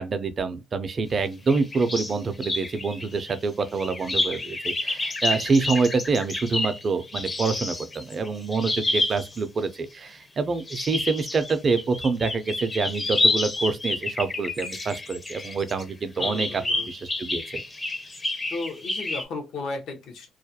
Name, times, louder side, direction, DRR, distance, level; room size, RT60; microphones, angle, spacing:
voice 1, 0.0-17.6, right 4 dB, 45° right, 0.4 m, -26 dB
sound 1, 1.5-2.2 2.4-9.4 10.5-15.8 16.2-19.2, left 2 dB, 25° left, 0.5 m, -29 dB
voice 2, 16.2-16.9 18.5-20.3, left 3 dB, 75° left, 0.7 m, -34 dB
2.3 x 2.1 x 2.7 m
cardioid pair, 90°, 0 cm